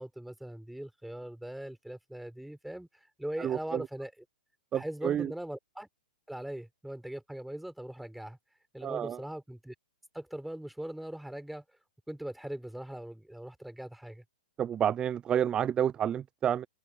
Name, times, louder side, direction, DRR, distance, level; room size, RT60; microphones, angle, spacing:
voice 1, 0.0-4.1 4.7-5.9 6.3-8.4 8.7-9.7 10.1-11.6 12.1-14.2, right 1 dB, ahead, 4.7 m, -40 dB
voice 2, 3.4-3.8 4.7-5.3 8.8-9.2 14.6-16.7, right 9 dB, 20° right, 0.4 m, -29 dB
hypercardioid pair, 130°, 5 cm